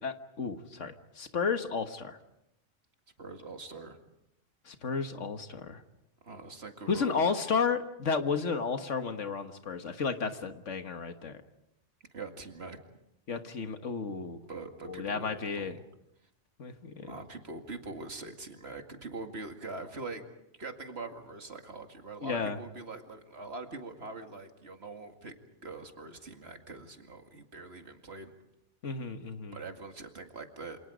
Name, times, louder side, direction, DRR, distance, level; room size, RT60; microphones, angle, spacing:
voice 1, 0.0-2.2 4.7-5.8 6.9-11.4 13.3-14.4 14.9-15.7 16.6-17.1 22.2-22.6 28.8-29.6, left 5 dB, 80° left, 8 dB, 1.8 m, -32 dB
voice 2, 3.2-4.0 6.2-7.2 12.1-12.8 14.5-15.3 15.5-15.7 17.0-20.2 20.6-25.3 25.6-28.3 29.5-30.8, right 3 dB, 60° right, 5 dB, 2.4 m, -43 dB
28.5 x 27.0 x 5.2 m, 0.83 s
omnidirectional pair, 1.2 m